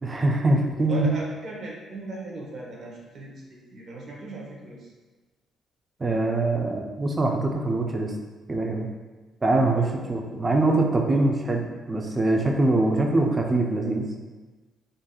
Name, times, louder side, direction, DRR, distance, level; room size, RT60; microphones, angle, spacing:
voice 1, 0.0-1.1 6.0-8.1 8.5-8.9 9.4-14.1, right 2 dB, 25° right, 2 dB, 0.4 m, -23 dB
voice 2, 0.9-4.9 9.6-10.1 11.1-11.2, right 2 dB, 55° right, -3 dB, 0.8 m, -38 dB
3.4 x 2.6 x 2.3 m, 1.3 s
cardioid pair, 90°, 0 cm